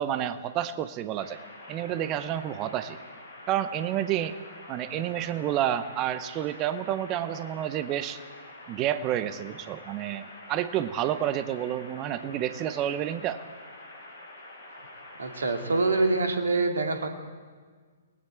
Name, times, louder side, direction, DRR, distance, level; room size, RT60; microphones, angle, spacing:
voice 1, 0.0-1.4 1.7-3.0 3.5-4.4 4.7-8.2 8.7-13.4, right 11 dB, 25° right, 12 dB, 0.8 m, -29 dB
sound 1, 1.2-16.2, left 2 dB, 65° left, 6.9 m, -47 dB
voice 2, 4.9-5.3 15.2-17.1, right 3 dB, 60° right, 4 dB, 2.4 m, -26 dB
30.0 x 19.5 x 4.5 m, 1.6 s
figure-of-eight pair, 120°, 0 cm